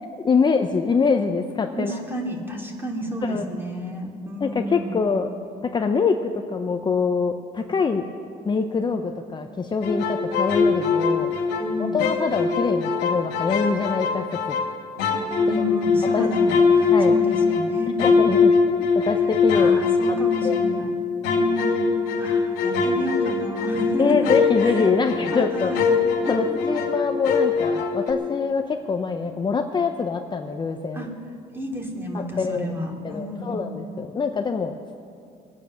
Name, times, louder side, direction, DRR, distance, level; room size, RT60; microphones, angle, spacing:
voice 1, 0.2-2.0 3.2-3.4 4.4-5.3 5.6-8.1 8.4-11.4 11.9-14.6 16.1-16.3 16.9-17.2 18.0-19.8 20.1-20.2 20.4-20.6 24.0-25.7 26.3-31.1 32.1-32.8 33.0-34.8, left 5 dB, 25° left, 5 dB, 0.7 m, -24 dB
voice 2, 1.8-5.0 11.6-12.0 15.4-18.0 19.5-20.9 21.2-21.9 22.2-24.3 24.6-24.8 25.3-25.9 26.3-26.7 30.9-31.1 31.5-33.6, equal, 15° right, 0 dB, 2.6 m, -31 dB
sound 1, 9.8-11.7 12.0-14.7 15.0-20.8 21.2-27.0 27.2-28.1, left 5 dB, 90° left, 2.3 m, -21 dB
21.5 x 8.9 x 6.3 m, 2.3 s
cardioid pair, 110°, 17 cm